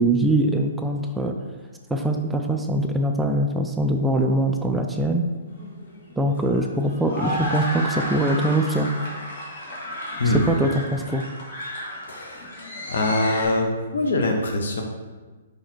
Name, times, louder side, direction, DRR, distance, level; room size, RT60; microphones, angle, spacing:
voice 1, 0.0-1.4 1.9-5.3 6.2-8.9 10.3-11.2, right 1 dB, 5° right, 3 dB, 0.3 m, -22 dB
sound 1, 5.5-13.4, equal, 50° left, 1.9 m, -33 dB
voice 2, 12.1-12.5 12.9-14.8, left 2 dB, 75° left, 3 dB, 1.1 m, -23 dB
5.1 x 4.9 x 4.5 m, 1.3 s
hypercardioid pair, 165°, 0 cm